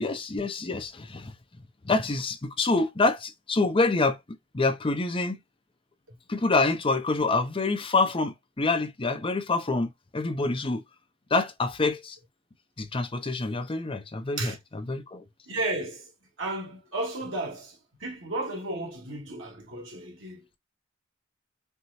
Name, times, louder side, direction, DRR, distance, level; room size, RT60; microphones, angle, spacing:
voice 1, 0.0-1.3 1.8-4.2 4.5-5.4 6.3-10.8 11.3-12.2 12.8-15.2, left 3 dB, 25° left, 0.7 m, -26 dB
voice 2, 15.5-16.1 16.4-20.4, right 2 dB, 75° right, 1.8 m, -33 dB
4.5 x 2.1 x 4.1 m
head